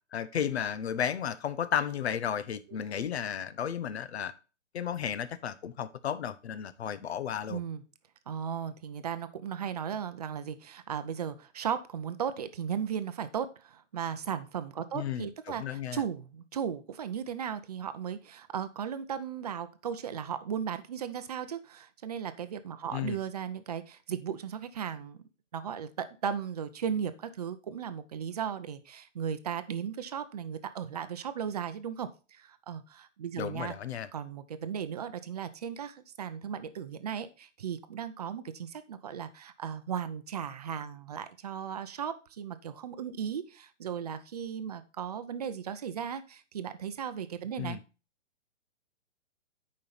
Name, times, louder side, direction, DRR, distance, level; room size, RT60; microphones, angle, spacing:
voice 1, 0.1-4.3 4.7-7.6 14.9-16.0 22.9-23.2 33.4-34.1 47.6-47.8, left 9 dB, 55° left, 0.9 m, -33 dB
voice 2, 7.5-7.8 8.3-25.2 25.5-33.7 34.1-47.8, right 8 dB, 30° right, 0.6 m, -36 dB
9.9 x 5.4 x 4.1 m
hypercardioid pair, 170°, 38 cm